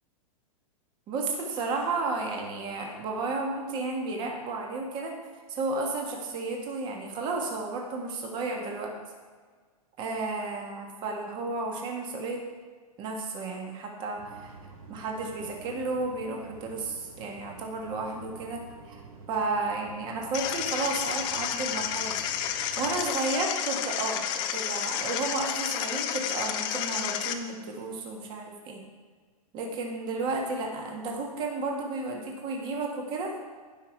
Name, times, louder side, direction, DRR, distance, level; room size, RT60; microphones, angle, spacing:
voice 1, 1.1-5.2 5.5-9.0 10.0-12.4 13.0-14.5 14.9-19.0 19.3-22.2 22.8-28.8 29.5-33.3, right 3 dB, 25° right, 1 dB, 1.7 m, -32 dB
sound 1, 14.2-23.1, right 4 dB, 65° right, 2.6 m, -49 dB
sound 2, 20.3-27.3, left 9 dB, 25° left, 0.6 m, -31 dB
17.0 x 5.8 x 4.6 m, 1.5 s
supercardioid pair, 165°, 19 cm